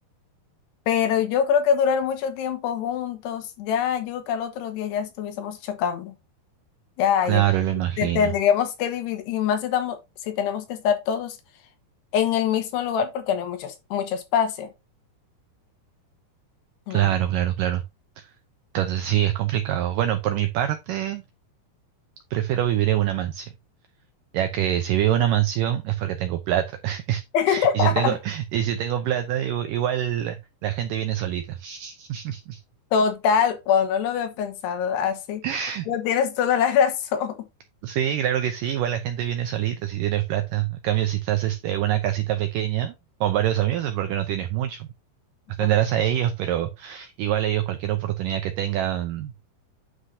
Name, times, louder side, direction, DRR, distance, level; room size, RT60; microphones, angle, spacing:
voice 1, 0.9-6.1 7.0-7.4 8.0-11.4 12.1-14.7 16.9-17.1 27.3-28.2 32.9-35.4 35.9-37.4 45.6-45.7, left 8 dB, 85° left, 3.3 m, -24 dB
voice 2, 7.3-8.3 16.9-17.8 18.2-18.3 18.7-21.2 22.3-23.5 24.3-27.2 27.5-32.6 35.4-35.9 37.8-42.9 43.2-44.9 45.6-49.5, right 12 dB, 90° right, 1.9 m, -25 dB
9.5 x 6.4 x 2.7 m
omnidirectional pair, 4.7 m